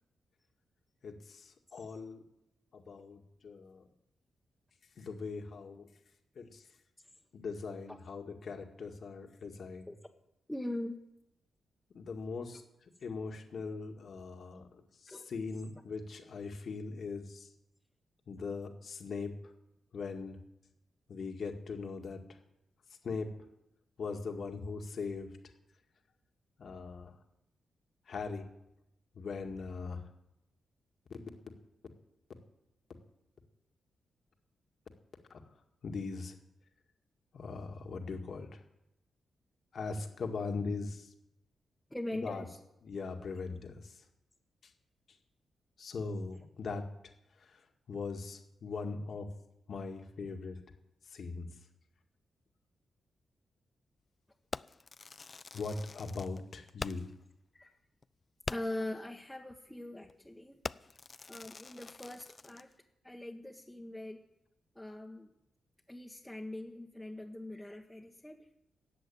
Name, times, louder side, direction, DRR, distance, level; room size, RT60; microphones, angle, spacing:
voice 1, 1.0-2.2 2.7-3.8 5.0-5.9 6.4-6.7 7.3-9.9 11.9-17.5 18.3-19.5 19.9-20.4 21.1-22.4 23.0-23.3 24.0-25.3 26.6-27.2 28.1-28.5 29.1-30.1 31.1-31.2 35.3-35.4 35.8-36.4 37.3-38.6 39.7-41.1 42.2-42.5 42.8-44.1 44.6-44.7 45.8-46.8 47.3-49.3 49.7-50.6 51.0-51.5 55.5-57.1, left 4 dB, 65° left, 4 dB, 2.0 m, -40 dB
voice 2, 10.5-11.0 15.1-15.3 41.9-42.6 57.5-57.7 58.5-60.6 61.3-62.7 63.0-64.2 64.7-65.3 65.9-68.5, left 1 dB, 10° left, -2 dB, 1.5 m, -42 dB
Fireworks, 54.5-57.2 57.6-57.7 58.0-58.1 58.4-58.9 59.5-59.7 60.0-60.3 60.6-62.7, left 4 dB, 40° left, 0.4 m, -44 dB
14.0 x 7.9 x 9.3 m, 0.86 s
supercardioid pair, 55°, 0 cm